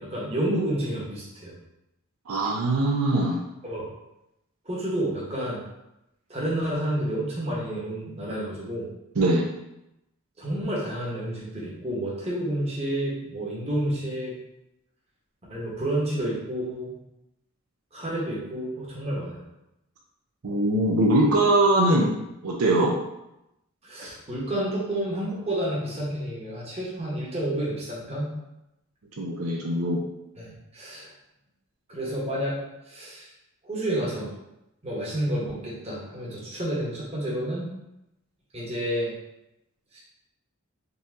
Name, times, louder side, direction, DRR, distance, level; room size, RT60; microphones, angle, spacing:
voice 1, 0.0-1.5 3.6-3.9 4.6-5.6 6.3-8.9 10.4-14.3 15.5-16.9 17.9-19.4 23.8-28.3 30.4-31.1 31.9-32.6 32.9-33.3 33.6-34.3 34.8-37.7 38.5-39.1 39.9-40.0, right 1 dB, 30° right, -6 dB, 1.2 m, -30 dB
voice 2, 2.3-3.4 9.2-9.5 20.4-22.9 29.2-30.0, right 1 dB, 75° right, -2 dB, 0.6 m, -22 dB
4.0 x 2.8 x 3.6 m, 0.89 s
head